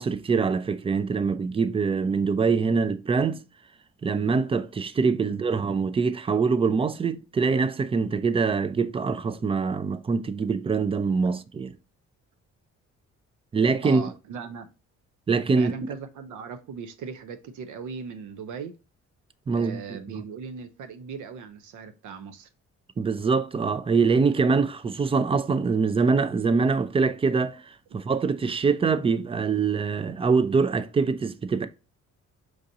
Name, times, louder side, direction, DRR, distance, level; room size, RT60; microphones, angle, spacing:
voice 1, 0.0-3.4 4.0-11.7 13.5-14.0 15.3-15.7 19.5-20.2 23.0-31.7, right 5 dB, 20° right, 0.3 m, -24 dB
voice 2, 13.8-14.7 15.6-18.7 19.5-22.5, right 6 dB, 80° right, 0.6 m, -38 dB
4.7 x 2.6 x 2.6 m
cardioid pair, 90°, 30 cm